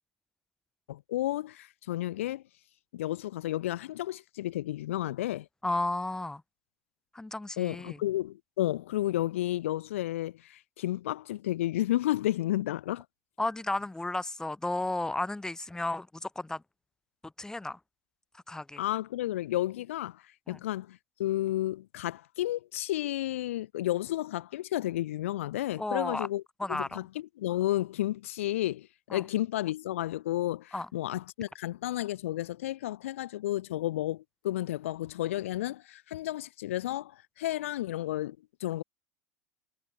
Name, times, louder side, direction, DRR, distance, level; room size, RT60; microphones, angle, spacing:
voice 1, 0.9-2.4 2.9-5.5 7.6-13.0 18.8-26.4 26.7-38.8, left 14 dB, 65° left, 1.1 m, -32 dB
voice 2, 5.6-6.4 7.1-8.0 13.4-16.6 17.4-17.8 18.5-18.8 20.5-20.6 25.8-26.3 26.6-27.0 29.1-29.2 30.7-30.9, left 2 dB, 10° left, 5.6 m, -33 dB
figure-of-eight pair, 75°, 8 cm